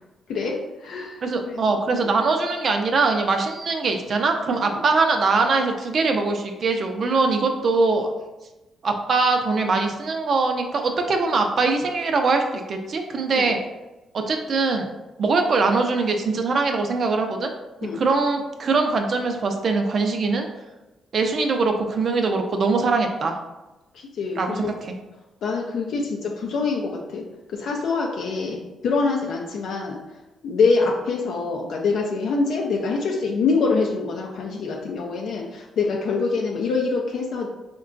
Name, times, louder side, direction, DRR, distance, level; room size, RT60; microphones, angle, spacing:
voice 1, 0.3-1.5 1.9-2.1 13.4-13.5 17.8-18.0 23.9-24.7 25.4-27.2 27.5-30.0 30.4-37.5, left 4 dB, 70° left, -1 dB, 0.4 m, -25 dB
voice 2, 1.2-8.1 8.8-13.6 14.1-14.9 15.2-17.5 17.9-20.5 21.1-23.4 24.4-24.9, right 3 dB, 55° right, 4 dB, 0.4 m, -22 dB
3.6 x 2.2 x 2.5 m, 1.0 s
supercardioid pair, 60°, 0 cm